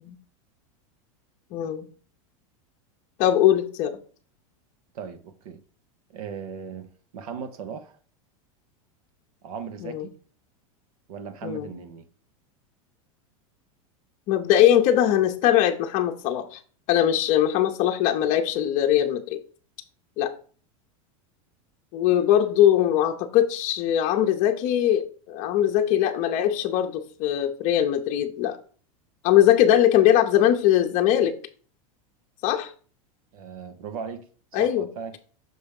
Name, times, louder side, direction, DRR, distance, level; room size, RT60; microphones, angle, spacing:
voice 1, 1.5-1.9 3.2-4.0 9.8-10.0 11.4-11.7 14.3-16.6 16.9-19.4 20.2-20.3 21.9-28.6 29.2-31.4 32.4-32.7 34.5-34.9, left 11 dB, 45° left, 0.7 m, -21 dB
voice 2, 4.9-5.6 6.1-8.0 9.4-10.1 11.1-12.0 33.3-35.2, right 6 dB, 85° right, 1.1 m, -38 dB
6.1 x 3.5 x 5.3 m
supercardioid pair, 135°, 18 cm